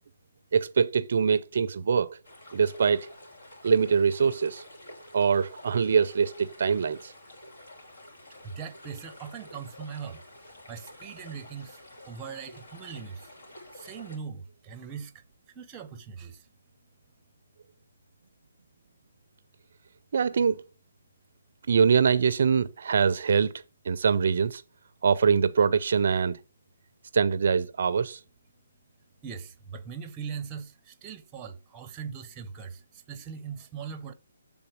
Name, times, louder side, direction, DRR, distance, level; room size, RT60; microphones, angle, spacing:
voice 1, 0.5-2.2 2.5-3.1 3.6-4.6 5.1-7.1 20.1-20.6 21.7-23.5 23.9-24.6 25.0-26.4 27.1-28.2, right 6 dB, 60° right, 0.4 m, -23 dB
sound 1, 2.2-14.2, left 1 dB, 70° left, 2.9 m, -49 dB
voice 2, 8.4-11.8 12.0-13.3 13.7-15.2 15.5-16.5 29.2-34.1, right 6 dB, 20° right, 0.7 m, -40 dB
7.8 x 3.5 x 6.0 m
hypercardioid pair, 155°, 0 cm